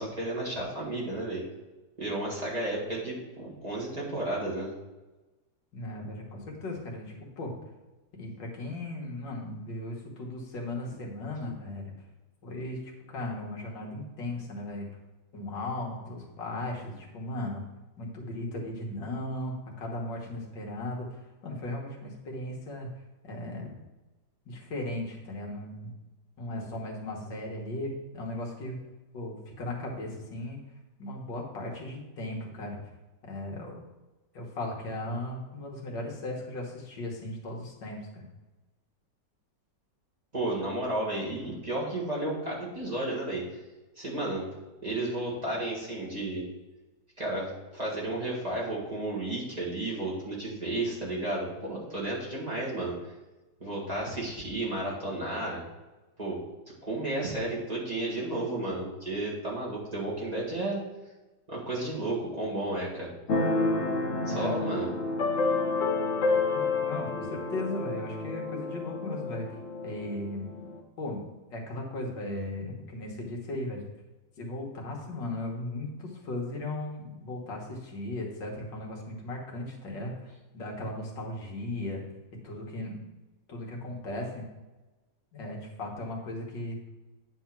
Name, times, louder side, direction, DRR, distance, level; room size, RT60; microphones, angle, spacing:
voice 1, 0.0-1.4 2.0-4.7 40.3-43.4 44.0-44.5 44.8-46.4 47.2-52.9 53.6-55.6 56.2-56.4 56.8-60.8 61.5-63.1 64.3-64.9, right 2 dB, 20° right, -6 dB, 1.8 m, -32 dB
voice 2, 5.7-7.5 8.2-11.9 12.4-12.8 13.1-14.9 15.3-17.6 18.0-22.9 23.2-23.7 24.5-25.9 26.4-28.8 29.1-30.6 31.0-32.8 33.2-33.8 34.3-38.2 41.4-41.5 64.0-64.6 66.5-69.4 69.8-70.5 71.0-73.9 74.4-80.1 80.5-82.0 82.4-83.0 83.5-84.4 85.3-86.8, left 1 dB, 80° left, -1 dB, 2.0 m, -37 dB
Keyboard (musical), 63.3-70.8, left 3 dB, 55° left, 1.0 m, -29 dB
9.2 x 3.6 x 5.8 m, 1.1 s
omnidirectional pair, 1.9 m